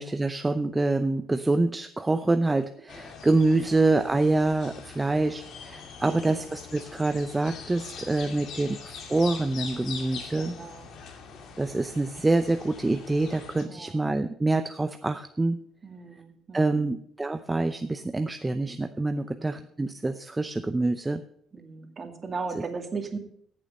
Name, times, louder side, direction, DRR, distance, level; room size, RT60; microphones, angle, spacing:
voice 1, 0.0-10.6 11.6-15.6 16.5-21.2, right 2 dB, 15° right, 9 dB, 0.6 m, -26 dB
sound 1, 2.9-13.7, left 5 dB, 70° left, 2.4 m, -43 dB
voice 2, 6.0-6.5 8.3-8.7 10.3-10.9 13.7-14.1 15.8-16.9 19.2-19.7 21.5-23.2, right 4 dB, 35° right, 4 dB, 2.3 m, -38 dB
15.0 x 7.6 x 5.5 m, 0.65 s
cardioid pair, 95°, 0 cm